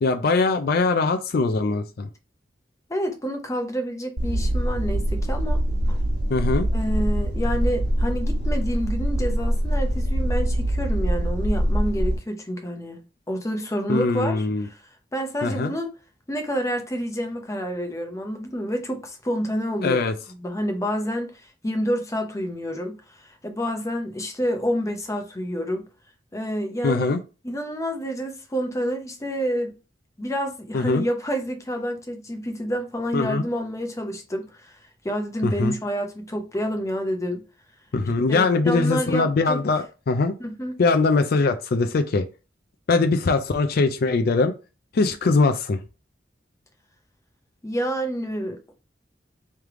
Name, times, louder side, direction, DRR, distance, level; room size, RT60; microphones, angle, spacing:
voice 1, 0.0-2.1 6.3-6.7 13.9-14.7 15.4-15.7 19.8-20.1 26.8-27.2 30.7-31.0 33.1-33.4 35.4-35.8 37.9-40.3 40.8-42.2 42.9-44.5 44.9-45.8, left 3 dB, 55° left, 0.4 m, -21 dB
voice 2, 2.9-5.6 6.7-14.8 15.1-15.9 16.3-20.0 20.4-25.9 26.3-27.1 27.4-29.7 30.2-34.8 35.0-37.4 38.3-39.6 40.4-40.7 47.6-48.7, equal, 15° left, 0.7 m, -28 dB
sound 1, 4.2-12.2, equal, 70° right, 1.3 m, -23 dB
3.4 x 3.1 x 3.6 m
head